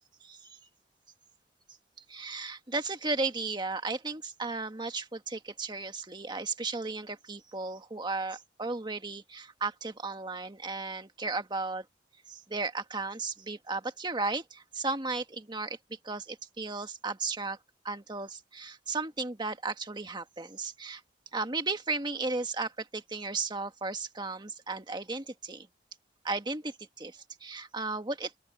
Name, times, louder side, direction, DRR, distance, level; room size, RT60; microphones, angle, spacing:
voice 1, 0.2-0.6 2.1-11.8 12.3-15.8 16.0-17.6 17.8-21.0 21.3-25.7 26.2-28.3, right 3 dB, 25° right, 1.6 m, -35 dB
open air
head